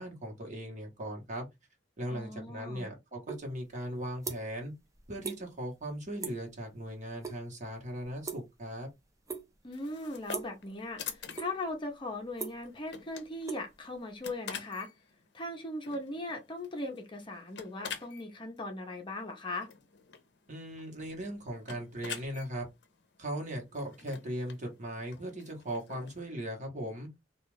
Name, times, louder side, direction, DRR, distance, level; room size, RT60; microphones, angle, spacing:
voice 1, 0.0-1.5 2.0-4.7 5.1-8.9 20.5-22.7 23.2-27.1, right 1 dB, 45° right, 1.1 m, -38 dB
voice 2, 2.1-2.9 9.6-14.9 15.3-19.7, left 2 dB, 25° left, 0.7 m, -39 dB
sound 1, 3.3-3.4 3.8-4.7 4.9-5.4 5.7-5.9 6.2-6.5 6.8-7.4 7.6-8.8 9.3-9.7 10.3-10.6 11.1-11.7 12.1-14.3, right 5 dB, 20° right, 0.5 m, -40 dB
sound 2, 9.7-26.2, left 7 dB, 65° left, 0.6 m, -48 dB
2.4 x 2.3 x 3.1 m
head